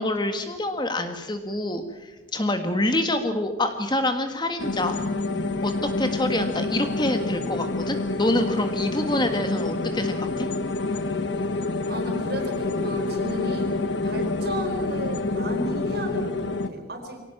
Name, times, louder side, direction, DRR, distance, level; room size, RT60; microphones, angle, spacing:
voice 1, 0.0-5.0 5.6-10.5, left 1 dB, 20° left, 7 dB, 1.7 m, -26 dB
sound 1, 4.6-16.7, left 3 dB, 65° left, 1.3 m, -27 dB
voice 2, 11.9-13.7 14.0-17.2, right 1 dB, 55° right, 5 dB, 4.7 m, -33 dB
24.0 x 18.0 x 7.3 m, 1.1 s
head